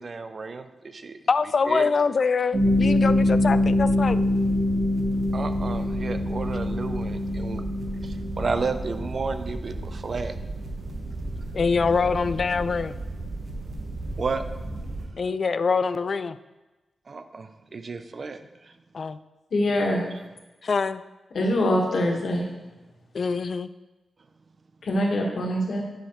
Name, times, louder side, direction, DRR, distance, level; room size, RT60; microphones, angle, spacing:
voice 1, 0.0-1.2 1.4-1.9 5.3-7.6 8.0-10.3 14.2-14.4 17.1-18.7, right 4 dB, 50° right, 9 dB, 0.5 m, -32 dB
voice 2, 1.3-4.2 11.5-12.9 15.2-16.4 18.9-19.2 20.6-21.0 23.1-23.7, left 5 dB, 55° left, 13 dB, 0.3 m, -24 dB
sound 1, 2.5-15.1, left 1 dB, 65° right, 1.3 m, -26 dB
voice 3, 19.5-20.0 21.3-22.4 24.8-25.8, left 1 dB, 75° left, -1 dB, 1.6 m, -23 dB
10.0 x 5.0 x 3.1 m, 1.1 s
cardioid pair, 80°, 0 cm